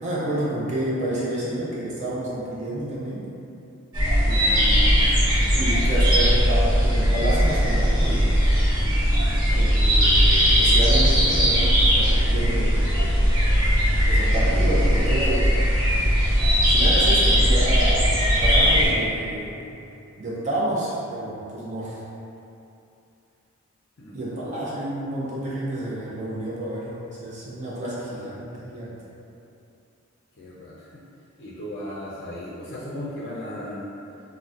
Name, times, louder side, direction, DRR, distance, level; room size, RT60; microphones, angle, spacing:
voice 1, 0.0-3.2 4.2-5.2 5.6-8.3 9.5-13.3 14.1-15.6 16.7-18.1 18.4-19.6 20.2-22.0 24.1-26.9 27.2-28.9, right 1 dB, 35° right, -8 dB, 0.5 m, -29 dB
sound 1, 3.9-18.9, equal, 70° right, 1.0 m, -19 dB
voice 2, 24.0-24.3 30.4-30.7 31.4-33.9, left 1 dB, 55° left, -8 dB, 0.4 m, -36 dB
3.8 x 2.1 x 2.4 m, 2.7 s
head